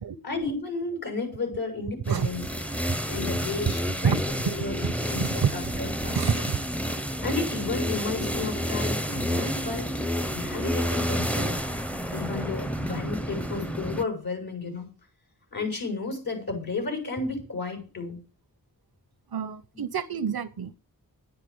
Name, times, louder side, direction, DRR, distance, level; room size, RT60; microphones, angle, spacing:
voice 1, 0.2-2.5 3.1-4.1 4.4-4.8 5.1-6.3 7.2-9.9 10.3-11.6 12.1-14.9 15.5-18.2 19.7-19.8, left 3 dB, 70° left, 6.8 m, -32 dB
sound 1, 2.1-14.0, equal, 5° left, 0.7 m, -30 dB
voice 2, 4.8-5.5 6.1-6.6 19.3-20.7, right 7 dB, 80° right, 0.8 m, -27 dB
9.8 x 8.3 x 7.9 m
cardioid pair, 40°, 37 cm